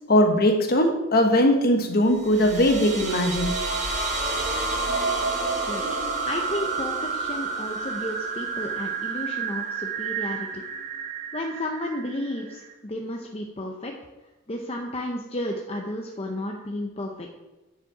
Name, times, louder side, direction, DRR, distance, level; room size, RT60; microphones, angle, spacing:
voice 1, 0.1-3.5, left 1 dB, 45° left, 4 dB, 1.1 m, -20 dB
sound 1, 2.1-12.7, right 4 dB, 35° right, 1.1 m, -29 dB
voice 2, 6.3-10.6 11.3-13.9 14.5-17.3, left 1 dB, 30° left, 1 dB, 0.7 m, -32 dB
9.2 x 5.2 x 4.9 m, 1.1 s
head